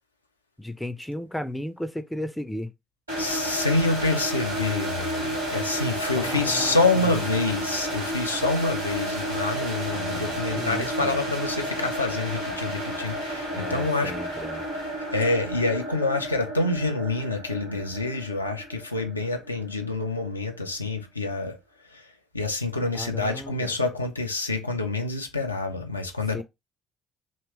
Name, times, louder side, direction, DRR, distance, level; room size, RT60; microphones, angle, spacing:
voice 1, 0.6-2.7 6.1-7.3 9.9-11.2 13.5-14.7 22.9-23.8 26.3-26.4, left 1 dB, 5° left, 0.4 m, -35 dB
sound 1, 3.1-19.9, right 1 dB, 85° right, 0.9 m, -31 dB
voice 2, 3.2-14.2 14.9-21.6 21.9-22.1 22.3-26.4, left 3 dB, 85° left, 0.3 m, -27 dB
2.9 x 2.1 x 2.9 m
figure-of-eight pair, 50°, 0 cm